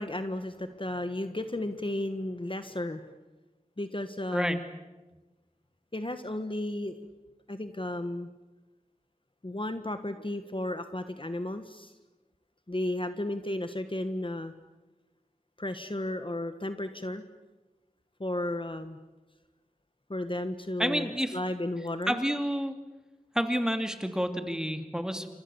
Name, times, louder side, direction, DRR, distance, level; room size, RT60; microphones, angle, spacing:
voice 1, 0.0-3.1 3.8-4.6 5.9-7.0 7.5-8.3 9.4-11.9 12.7-14.5 15.6-17.2 18.2-19.0 20.1-22.2, left 1 dB, 35° left, 9 dB, 1.6 m, -34 dB
voice 2, 20.8-21.4 22.1-22.7 23.3-25.3, equal, 5° right, 7 dB, 2.7 m, -29 dB
29.5 x 26.5 x 7.2 m, 1.1 s
wide cardioid pair, 50°, 14 cm